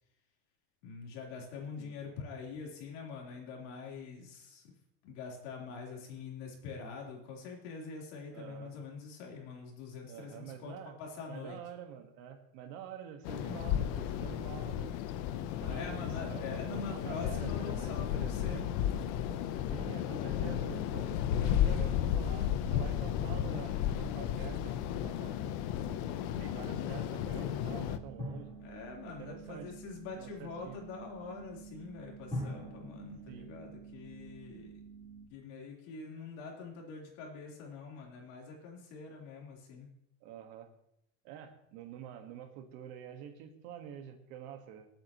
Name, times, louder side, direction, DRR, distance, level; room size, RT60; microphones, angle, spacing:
voice 1, 0.8-4.7 5.0-11.6 15.6-18.6 28.6-34.7 35.3-39.9, left 4 dB, 70° left, -1 dB, 3.7 m, -44 dB
voice 2, 8.3-8.8 10.1-11.0 11.3-14.9 15.6-18.6 19.7-21.1 21.4-25.4 26.4-28.6 29.0-29.7 30.2-30.8 33.3-33.5 40.2-40.7 41.2-44.9, right 8 dB, 55° right, 6 dB, 1.6 m, -47 dB
sound 1, 13.2-28.0, left 10 dB, 50° left, 0.8 m, -33 dB
sound 2, 15.8-35.3, right 6 dB, 40° right, 3.6 m, -53 dB
Drum, 28.2-29.7 32.3-34.5, left 1 dB, 15° left, 3.8 m, -43 dB
25.0 x 8.8 x 3.0 m, 0.76 s
cardioid pair, 175°, 38 cm